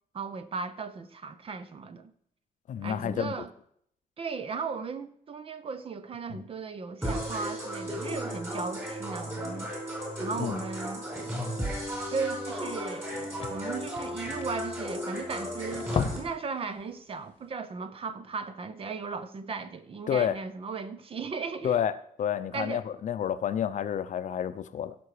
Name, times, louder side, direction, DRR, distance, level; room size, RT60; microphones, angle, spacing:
voice 1, 0.1-2.1 2.8-3.5 4.2-9.7 10.2-11.1 12.1-21.8 22.5-22.8, right 5 dB, 35° right, 0.7 m, -36 dB
voice 2, 2.7-3.3 6.3-6.4 10.4-10.6 20.1-20.4 21.6-21.9 22.2-25.0, left 9 dB, 55° left, 0.6 m, -29 dB
sound 1, 7.0-16.2, equal, 15° right, 4.8 m, -34 dB
sound 2, 12.3-12.4 12.7-12.8 13.0-15.3 15.7-16.5 16.8-17.0 17.4-17.5, left 6 dB, 35° left, 1.1 m, -35 dB
16.0 x 6.1 x 4.9 m
cardioid pair, 150°, 15 cm